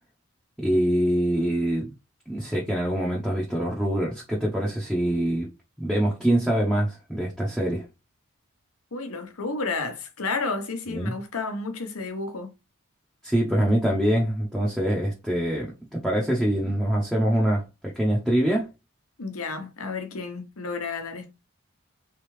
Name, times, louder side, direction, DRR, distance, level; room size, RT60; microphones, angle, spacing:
voice 1, 0.6-1.9 2.3-5.5 5.8-7.8 10.9-11.1 13.2-18.7, right 1 dB, ahead, 0.7 m, -24 dB
voice 2, 8.9-12.5 19.2-21.3, left 3 dB, 85° left, 1.0 m, -31 dB
3.6 x 3.3 x 3.2 m
head